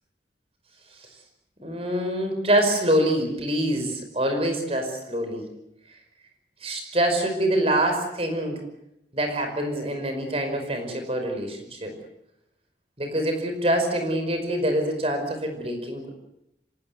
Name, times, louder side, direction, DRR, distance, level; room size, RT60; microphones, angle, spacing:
voice 1, 1.6-5.5 6.6-8.6 9.1-11.9 13.0-16.1, right 1 dB, 35° right, 5 dB, 5.2 m, -25 dB
26.0 x 18.5 x 7.9 m, 0.82 s
head